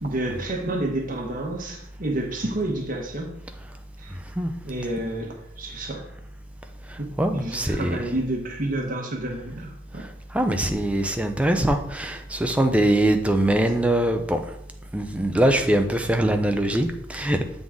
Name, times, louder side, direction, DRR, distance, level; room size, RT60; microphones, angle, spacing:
voice 1, 0.0-3.3 4.0-4.1 4.6-6.1 7.3-10.1, right 1 dB, 45° right, 1 dB, 1.1 m, -29 dB
voice 2, 4.1-4.5 6.8-8.0 9.9-14.5 14.9-17.4, right 1 dB, 5° right, 6 dB, 0.4 m, -23 dB
7.5 x 3.9 x 3.6 m, 0.77 s
head